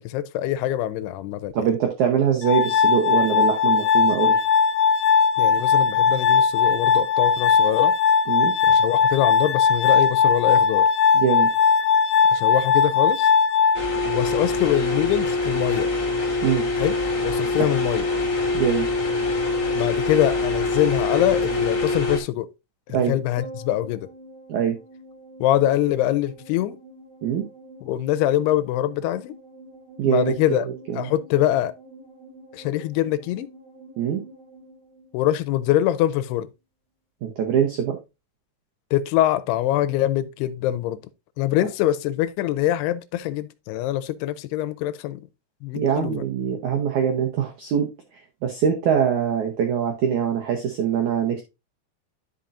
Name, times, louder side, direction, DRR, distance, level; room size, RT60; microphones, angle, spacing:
voice 1, 0.0-1.5 5.4-7.9 8.6-10.9 12.3-13.3 14.1-15.9 16.8-18.1 19.8-22.5 22.9-24.1 25.4-26.8 27.8-29.3 30.0-30.7 31.0-31.7 32.5-33.5 35.1-36.5 38.9-41.0 41.4-45.2 45.6-46.1, left 13 dB, 80° left, 2.5 m, -24 dB
voice 2, 1.5-4.4 8.3-8.5 11.1-11.5 16.4-16.7 18.5-18.9 22.9-23.2 24.5-24.8 27.2-27.5 30.0-31.1 34.0-34.2 37.2-38.0 45.7-47.9 48.4-51.4, right 8 dB, 75° right, 1.8 m, -23 dB
Glass, 2.4-14.4, left 6 dB, 55° left, 2.1 m, -19 dB
sound 1, 13.7-22.2, left 2 dB, 35° left, 1.2 m, -24 dB
sound 2, 23.4-35.9 36.1-36.2, right 2 dB, 20° right, 3.8 m, -46 dB
11.5 x 5.3 x 2.5 m
omnidirectional pair, 4.9 m